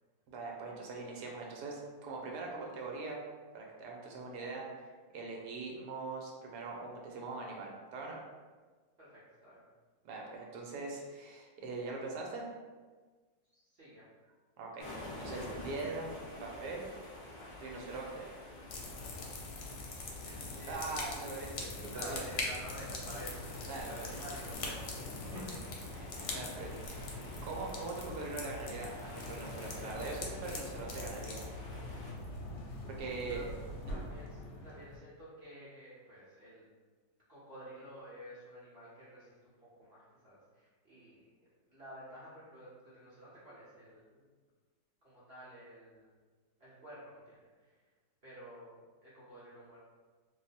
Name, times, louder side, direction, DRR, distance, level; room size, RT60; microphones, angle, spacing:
voice 1, 0.3-3.2 3.5-8.2 10.0-12.5 14.6-16.1 16.4-16.8 17.6-18.3 20.7-22.2 23.7-24.1 25.3-25.4 25.9-27.0 27.4-31.4 32.8-33.4 33.9-34.0, right 3 dB, 75° right, -1 dB, 1.1 m, -42 dB
voice 2, 9.0-9.6 13.5-14.1 19.7-19.9 20.2-21.4 21.9-23.5 23.8-25.7 33.1-33.4 33.9-36.7 37.3-39.5 39.8-41.2 41.7-44.3 45.0-46.1 46.6-47.7 48.2-48.7 49.0-49.8, equal, 45° right, -9 dB, 0.8 m, -51 dB
sound 1, 14.8-32.1, left 1 dB, 60° left, 0.4 m, -48 dB
sound 2, 18.7-35.0, left 2 dB, 85° left, 1.3 m, -43 dB
2.9 x 2.0 x 4.0 m, 1.4 s
omnidirectional pair, 1.8 m